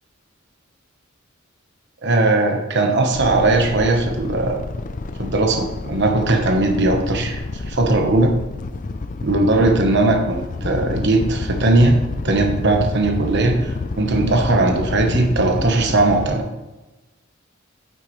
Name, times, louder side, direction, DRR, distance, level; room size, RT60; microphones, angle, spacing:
voice 1, 2.0-4.6 5.2-8.3 9.2-12.0 12.2-16.5, right 2 dB, 55° right, 4 dB, 1.2 m, -18 dB
sound 1, 3.1-16.4, left 3 dB, 40° left, 0.5 m, -29 dB
9.2 x 8.3 x 3.3 m, 1.1 s
head